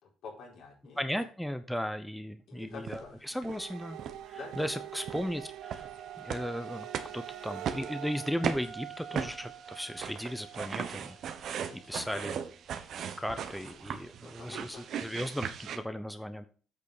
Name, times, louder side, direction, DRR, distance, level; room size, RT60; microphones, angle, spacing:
voice 1, 0.0-1.0 2.5-3.3 4.3-5.1 11.4-12.2 13.1-14.9, left 5 dB, 75° left, -2 dB, 4.4 m, -50 dB
voice 2, 1.0-4.0 4.3-5.9 6.2-6.9 7.1-11.2 11.4-11.5 11.9-12.4 13.2-16.5, equal, ahead, 9 dB, 0.8 m, -36 dB
sound 1, 2.9-3.1 3.4-3.7 4.0-4.2 4.5-4.7 5.1-15.8, right 8 dB, 70° right, 1.1 m, -39 dB
sound 2, 3.4-8.3, right 12 dB, 90° right, 0.4 m, -45 dB
sound 3, 5.6-12.2, right 10 dB, 50° right, 1.8 m, -47 dB
8.5 x 6.6 x 4.9 m, 0.38 s
cardioid pair, 90°, 0 cm